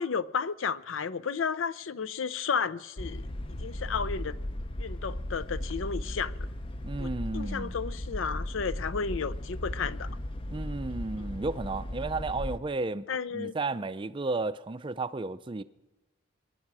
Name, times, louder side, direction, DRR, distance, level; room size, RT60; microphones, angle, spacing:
voice 1, 0.0-3.3 3.6-4.4 4.8-6.5 7.0-10.1 11.2-11.3 13.1-13.5, left 6 dB, 70° left, 0.5 m, -33 dB
sound 1, 3.0-12.6, left 1 dB, 25° left, 0.5 m, -36 dB
voice 2, 6.8-7.7 10.5-13.1 13.3-15.6, right 3 dB, 25° right, 0.4 m, -33 dB
23.0 x 10.5 x 4.8 m
head